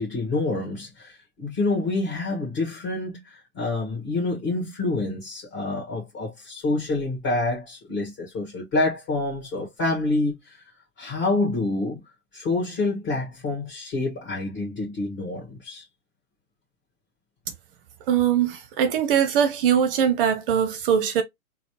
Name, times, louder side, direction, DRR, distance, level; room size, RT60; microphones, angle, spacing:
voice 1, 0.0-10.6 11.0-12.0 12.3-15.8, left 2 dB, 35° left, 1.7 m, -27 dB
voice 2, 18.1-21.2, right 8 dB, 40° right, 0.6 m, -21 dB
4.0 x 2.0 x 3.1 m
hypercardioid pair, 125°, 43 cm